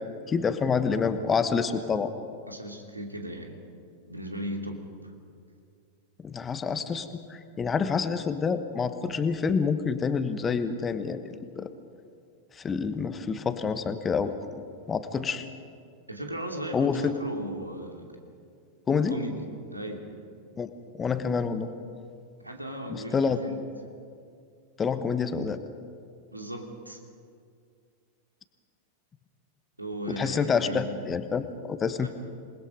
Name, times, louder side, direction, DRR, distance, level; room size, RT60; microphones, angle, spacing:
voice 1, 0.3-2.1 6.2-11.7 12.6-14.3 14.9-15.5 16.7-17.1 18.9-19.2 20.6-21.7 22.9-23.4 24.8-25.6 30.1-32.1, left 5 dB, 20° left, 11 dB, 1.2 m, -27 dB
voice 2, 2.5-3.6 4.1-5.1 16.1-18.2 19.1-20.1 22.4-23.6 26.3-27.0 29.8-31.0 32.0-32.1, equal, 85° right, 3 dB, 2.6 m, -37 dB
27.5 x 20.0 x 5.2 m, 2.3 s
figure-of-eight pair, 90°, 0 cm